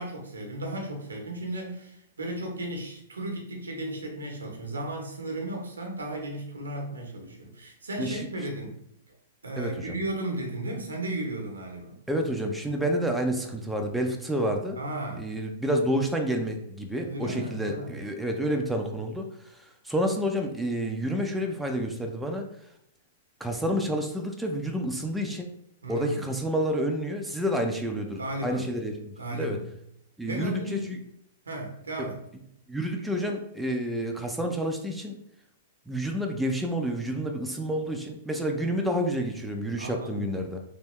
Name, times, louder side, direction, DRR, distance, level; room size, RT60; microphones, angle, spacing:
voice 1, 0.0-8.8 9.4-11.9 14.8-15.3 17.0-17.9 25.8-26.3 28.2-28.7 29.2-29.6 30.2-30.9 31.5-32.2 39.8-40.3, right 1 dB, 90° right, 2 dB, 0.9 m, -35 dB
voice 2, 9.6-9.9 12.1-14.8 15.2-22.4 23.4-25.5 25.9-29.6 30.2-31.0 32.0-32.1 32.7-35.2 35.9-40.6, equal, 5° right, 2 dB, 0.5 m, -29 dB
3.4 x 2.7 x 3.1 m, 0.78 s
hypercardioid pair, 115°, 0 cm